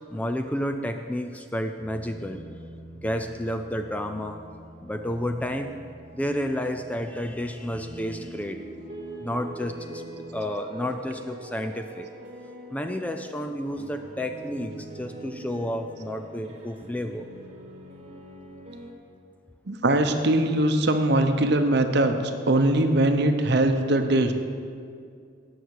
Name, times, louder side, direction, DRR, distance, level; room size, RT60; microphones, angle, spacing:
voice 1, 0.1-2.4 3.0-4.4 4.8-5.8 6.1-8.6 9.2-10.0 10.3-12.1 12.7-17.3, equal, 5° left, 6 dB, 0.4 m, -31 dB
sound 1, 1.8-18.9, right 1 dB, 30° right, 1.3 m, -44 dB
voice 2, 19.7-22.2 22.5-24.3, right 1 dB, 55° right, 6 dB, 0.8 m, -21 dB
17.5 x 6.5 x 4.7 m, 2.3 s
head